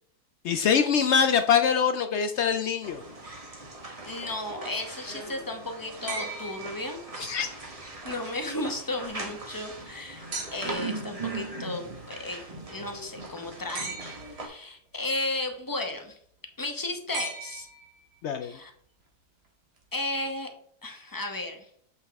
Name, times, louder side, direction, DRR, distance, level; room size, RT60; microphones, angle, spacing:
voice 1, 0.4-3.0 7.2-7.5 18.2-18.5, left 7 dB, 80° left, 8 dB, 0.6 m, -24 dB
sound 1, 2.8-14.5, right 3 dB, 25° right, 1.0 m, -40 dB
voice 2, 4.0-7.0 8.0-10.3 10.5-12.4 12.7-14.0 14.4-16.2 16.6-17.7 18.4-18.7 19.9-20.5 20.8-21.7, left 2 dB, 20° left, 4 dB, 0.7 m, -34 dB
sound 2, 6.1-7.5 10.3-10.9 13.7-14.5 17.1-18.2 19.8-19.9, right 3 dB, 85° right, 2.0 m, -38 dB
7.7 x 5.4 x 3.5 m, 0.65 s
omnidirectional pair, 1.7 m